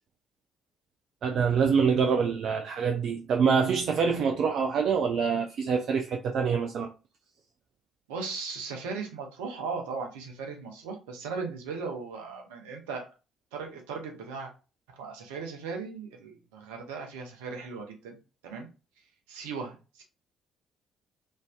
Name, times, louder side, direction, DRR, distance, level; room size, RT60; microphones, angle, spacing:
voice 1, 1.2-6.9, right 6 dB, 50° right, 0.3 m, -25 dB
voice 2, 8.1-13.1 13.5-14.5 15.0-18.2 18.4-18.7 19.3-20.0, right 4 dB, 70° right, 0.7 m, -37 dB
3.1 x 2.6 x 2.2 m
figure-of-eight pair, 45°, 0 cm